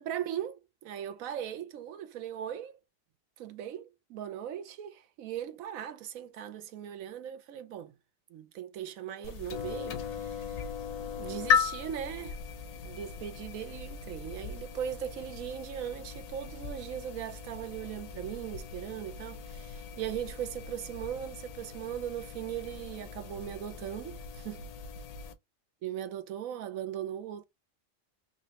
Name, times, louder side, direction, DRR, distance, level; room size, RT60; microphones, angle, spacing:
voice 1, 0.0-2.8 3.4-7.9 8.3-10.7 11.2-12.4 12.8-24.7 25.8-27.4, right 10 dB, 90° right, 1.1 m, -39 dB
sound 1, 9.2-25.3, left 6 dB, 90° left, 1.2 m, -37 dB
4.1 x 2.7 x 2.9 m
omnidirectional pair, 1.4 m